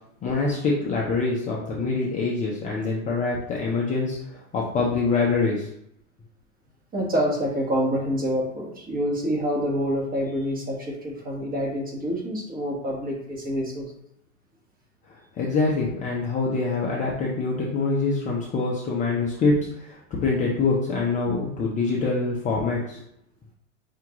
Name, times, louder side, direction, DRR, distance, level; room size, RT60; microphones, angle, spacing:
voice 1, 0.2-5.7 15.4-23.0, left 3 dB, 20° left, -3 dB, 0.5 m, -25 dB
voice 2, 6.9-13.9, equal, 20° right, -2 dB, 1.3 m, -27 dB
5.6 x 2.5 x 2.9 m, 0.75 s
hypercardioid pair, 125°, 39 cm